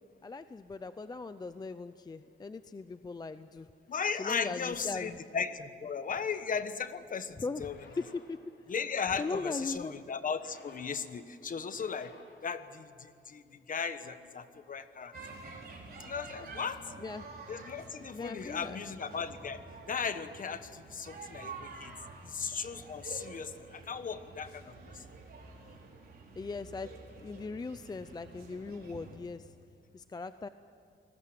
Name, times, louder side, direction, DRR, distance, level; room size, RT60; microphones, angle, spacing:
voice 1, 0.2-3.7 4.2-5.2 7.4-8.4 9.2-10.0 17.0-17.2 18.1-18.8 26.4-26.9 27.2-29.5 29.9-30.5, left 4 dB, 20° left, 12 dB, 0.5 m, -39 dB
voice 2, 3.9-7.8 8.7-12.1 12.4-15.1 16.0-16.9 17.5-19.6 19.9-22.0 22.2-25.0, left 6 dB, 45° left, 11 dB, 1.2 m, -37 dB
sound 1, 7.3-13.2, left 3 dB, 65° left, 3.8 m, -58 dB
sound 2, 15.1-29.1, right 3 dB, 50° right, 4.4 m, -49 dB
28.5 x 20.0 x 7.7 m, 2.3 s
wide cardioid pair, 145°, 20 cm